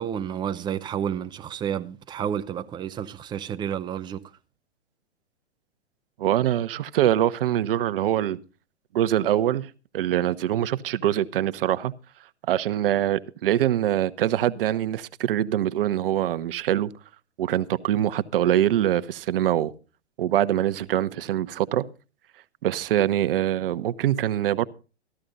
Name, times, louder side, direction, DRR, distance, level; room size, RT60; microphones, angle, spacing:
voice 1, 0.0-4.2, right 9 dB, 15° right, 0.6 m, -30 dB
voice 2, 6.2-8.4 8.9-11.9 12.5-16.9 17.4-19.7 20.2-21.8 22.6-24.7, right 12 dB, 55° right, 1.0 m, -24 dB
14.5 x 12.5 x 4.0 m
hypercardioid pair, 125°, 34 cm